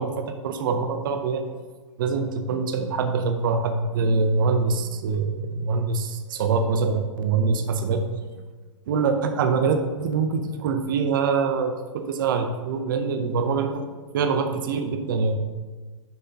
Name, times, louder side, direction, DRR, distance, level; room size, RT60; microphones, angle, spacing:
voice 1, 0.0-1.4 2.0-8.1 8.9-13.8 14.1-15.4, right 4 dB, 40° right, 6 dB, 0.6 m, -24 dB
10.5 x 5.7 x 2.8 m, 1.3 s
hypercardioid pair, 165°, 16 cm